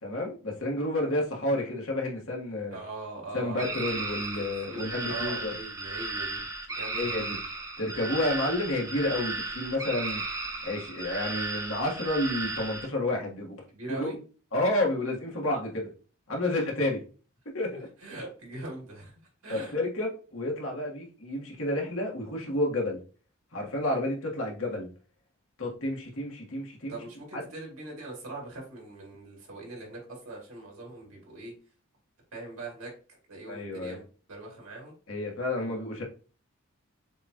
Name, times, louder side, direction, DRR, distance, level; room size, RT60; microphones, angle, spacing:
voice 1, 0.0-2.8 3.3-5.5 6.9-7.4 7.8-10.2 10.6-13.6 13.9-14.2 14.5-15.9 16.3-17.0 17.5-17.9 19.5-23.0 23.5-24.9 25.6-27.0 27.3-27.4 33.5-34.0 35.1-36.0, left 1 dB, 70° left, -1 dB, 1.4 m, -30 dB
voice 2, 2.7-4.0 4.4-6.4 6.7-7.1 13.7-14.1 18.0-19.8 26.9-31.5 32.3-34.0 34.3-34.9 35.6-36.0, right 2 dB, 80° right, -1 dB, 2.5 m, -42 dB
sound 1, 3.6-12.9, right 2 dB, 15° right, 0.7 m, -35 dB
6.9 x 2.3 x 2.9 m, 0.38 s
head